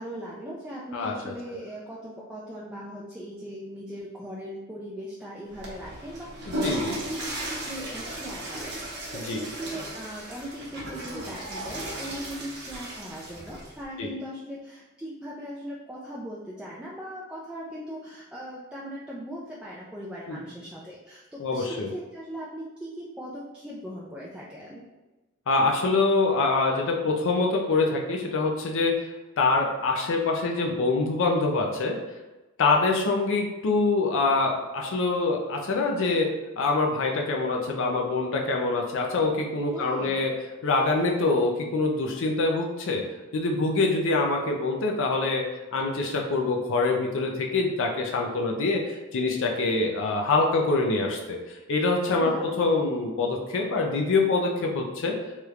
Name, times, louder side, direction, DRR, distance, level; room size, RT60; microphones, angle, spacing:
voice 1, 0.0-7.1 7.4-24.8 39.7-40.3 52.2-52.6, equal, 5° right, -6 dB, 0.3 m, -39 dB
voice 2, 0.9-1.3 6.5-7.0 9.2-9.4 14.0-14.1 20.3-20.4 21.4-21.9 25.5-32.0 32.6-40.3 40.6-43.0 43.3-51.4 51.7-55.1, left 3 dB, 60° left, 1 dB, 0.4 m, -25 dB
Water / Toilet flush, 5.5-13.8, right 1 dB, 50° right, 0.8 m, -36 dB
3.1 x 3.0 x 2.4 m, 1.1 s
head